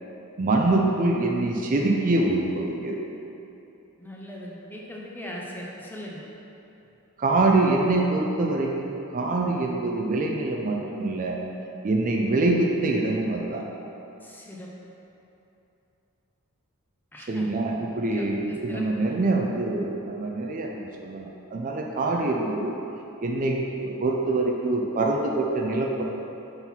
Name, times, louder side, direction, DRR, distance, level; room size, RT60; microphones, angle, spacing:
voice 1, 0.4-3.0 7.2-11.4 11.8-13.7 17.3-22.7 23.2-26.0, right 2 dB, 35° right, 0 dB, 0.4 m, -25 dB
voice 2, 4.0-6.3 14.2-14.7 17.1-17.5 18.1-19.1, equal, 10° left, -3 dB, 0.6 m, -39 dB
4.4 x 4.0 x 5.5 m, 2.9 s
head